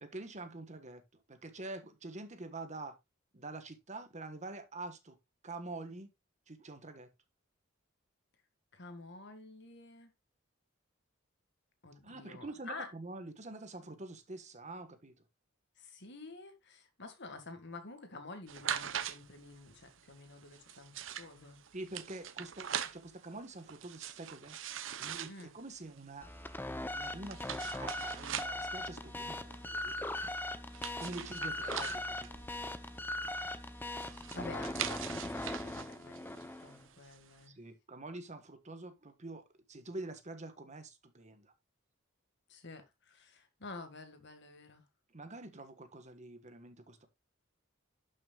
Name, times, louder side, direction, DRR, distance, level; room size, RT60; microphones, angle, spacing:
voice 1, 0.0-1.0 1.3-2.9 3.3-5.2 5.4-6.1 6.5-7.1 12.0-15.1 21.7-24.6 25.0-26.3 26.9-30.0 31.0-32.3 37.5-39.4 39.7-41.5 45.1-47.1, right 2 dB, 35° right, 1.4 m, -46 dB
voice 2, 8.7-10.1 11.8-12.9 15.8-21.6 25.3-25.5 31.2-31.5 31.7-31.9 34.3-37.6 42.5-44.9, left 3 dB, 60° left, 1.9 m, -50 dB
sound 1, 18.5-37.4, right 9 dB, 65° right, 0.8 m, -44 dB
sound 2, 26.2-36.8, left 1 dB, 10° left, 0.7 m, -40 dB
11.5 x 6.4 x 2.4 m
head